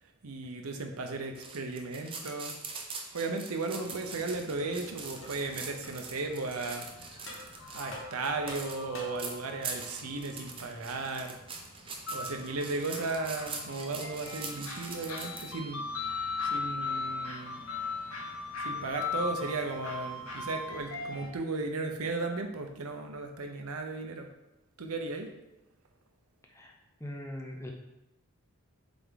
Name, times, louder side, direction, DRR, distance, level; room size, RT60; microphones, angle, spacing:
voice 1, 0.0-2.6 2.9-6.9 7.5-11.4 12.1-15.9 16.4-17.6 18.6-24.3 24.8-25.4, right 3 dB, 85° right, 5 dB, 0.8 m, -36 dB
sound 1, 1.3-15.5, right 4 dB, 25° right, 0.6 m, -42 dB
sound 2, 3.7-21.3, left 3 dB, 80° left, 1.2 m, -40 dB
sound 3, 4.6-4.7 5.2-5.4 5.8-6.0 6.6-6.7 7.3-7.5 7.9-9.3, left 1 dB, 60° left, 1.5 m, -45 dB
voice 2, 27.0-27.7, left 1 dB, 10° left, 0 dB, 0.7 m, -41 dB
7.5 x 3.5 x 3.8 m, 0.92 s
head